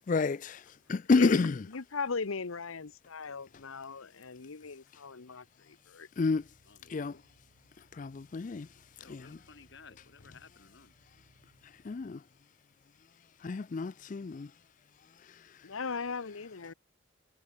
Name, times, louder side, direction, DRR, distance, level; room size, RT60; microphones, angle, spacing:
voice 1, 0.1-1.7 6.2-6.5 6.9-7.2 7.8-9.4 11.6-12.3 13.4-14.5 15.0-15.7, left 4 dB, 40° left, 0.4 m, -31 dB
voice 2, 1.7-6.1 15.6-16.7, left 4 dB, 85° left, 0.9 m, -38 dB
sound 1, 6.3-12.1, right 1 dB, 75° right, 3.1 m, -66 dB
voice 3, 6.7-7.2 9.0-10.9, left 4 dB, 55° left, 1.4 m, -56 dB
head